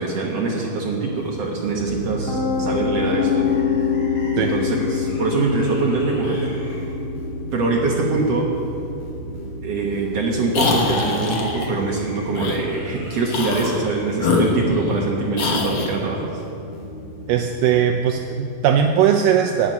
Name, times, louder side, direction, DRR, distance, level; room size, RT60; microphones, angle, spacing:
voice 1, 0.0-3.5 4.4-6.8 7.5-8.5 9.6-16.4, right 3 dB, 65° right, -1 dB, 1.6 m, -23 dB
sound 1, 1.1-17.8, left 1 dB, 60° left, 4.1 m, -37 dB
Piano, 1.9-13.8, left 5 dB, 35° left, 1.5 m, -27 dB
sound 2, 10.5-11.7 12.3-12.6 13.3-13.8 14.2-15.0 15.4-15.9, left 3 dB, 80° left, 1.2 m, -23 dB
voice 2, 17.3-19.7, right 8 dB, 85° right, 4 dB, 1.9 m, -19 dB
11.5 x 8.1 x 9.3 m, 2.7 s
omnidirectional pair, 4.5 m